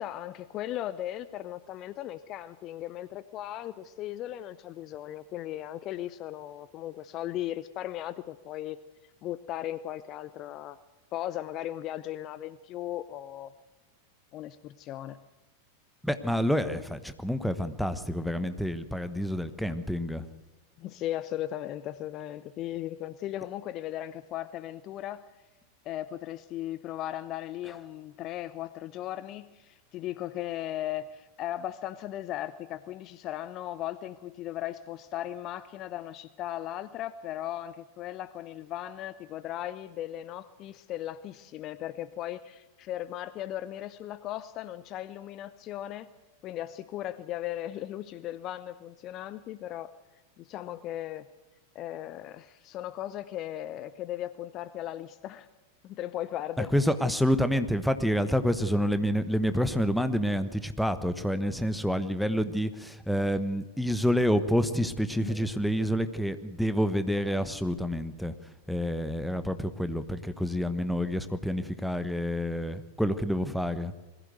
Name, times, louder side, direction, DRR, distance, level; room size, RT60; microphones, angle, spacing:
voice 1, 0.0-8.8 9.2-10.8 11.1-13.5 14.3-15.2 20.8-25.2 25.8-46.1 46.4-49.9 50.4-51.3 51.7-55.5 55.8-56.7 65.1-65.5, left 13 dB, 35° left, 15 dB, 0.6 m, -37 dB
voice 2, 16.0-20.2 56.6-68.3 68.7-73.9, equal, ahead, 11 dB, 1.2 m, -28 dB
21.5 x 15.5 x 8.0 m, 1.1 s
figure-of-eight pair, 90°, 0 cm